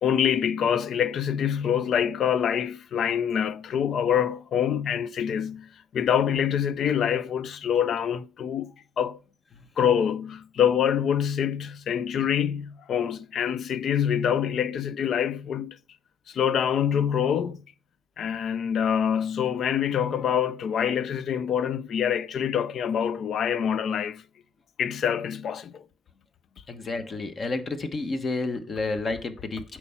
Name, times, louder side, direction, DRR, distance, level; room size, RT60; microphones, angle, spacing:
voice 1, 0.0-5.7 5.9-8.7 9.0-9.2 9.8-15.8 16.3-17.6 18.2-24.2 24.8-25.8, left 8 dB, 65° left, 0.4 m, -25 dB
voice 2, 26.7-29.6, left 3 dB, 45° left, 1.1 m, -30 dB
8.3 x 4.5 x 5.6 m
cardioid pair, 90°, 0 cm